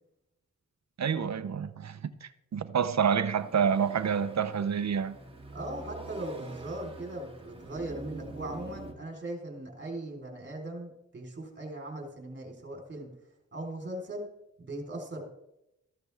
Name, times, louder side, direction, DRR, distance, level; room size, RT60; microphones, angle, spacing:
voice 1, 1.0-5.1, right 7 dB, 55° right, 0.8 m, -28 dB
sound 1, 3.4-8.9, right 2 dB, 15° right, 2.2 m, -45 dB
voice 2, 5.5-13.1 13.5-14.3 14.6-15.2, right 1 dB, 35° right, 3.9 m, -39 dB
14.0 x 12.0 x 3.5 m
cardioid pair, 75°, 33 cm